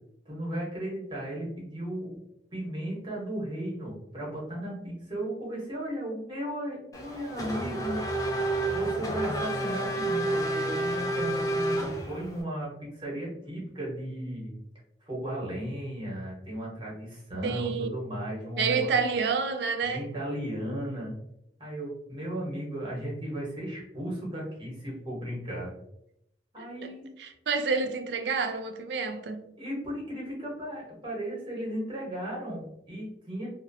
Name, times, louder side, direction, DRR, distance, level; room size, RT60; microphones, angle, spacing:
voice 1, 0.2-2.2 2.5-8.2 8.7-14.5 15.0-18.9 19.8-21.1 21.6-25.7 26.5-27.1 29.6-33.5, right 1 dB, 30° right, 1.1 m, -35 dB
Race car auto racing / Accelerating revving vroom, 6.9-12.4, right 1 dB, 20° left, 0.4 m, -30 dB
voice 2, 17.4-17.9 18.6-20.1 26.6-26.9 27.2-29.4, right 5 dB, 70° right, 0.4 m, -29 dB
2.7 x 2.1 x 2.5 m
head